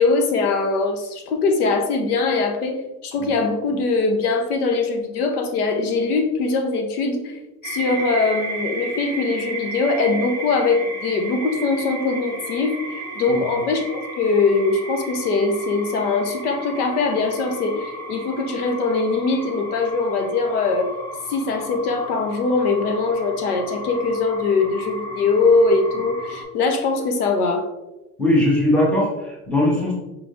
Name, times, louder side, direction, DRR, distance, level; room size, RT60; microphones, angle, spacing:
voice 1, 0.0-2.8 3.0-20.9 21.3-27.7, left 3 dB, 90° left, 5 dB, 0.9 m, -22 dB
sound 1, 7.6-26.4, right 2 dB, 20° left, 1.4 m, -34 dB
voice 2, 28.2-29.9, left 1 dB, ahead, -4 dB, 1.0 m, -19 dB
4.7 x 3.5 x 2.5 m, 1.0 s
supercardioid pair, 140°, 44 cm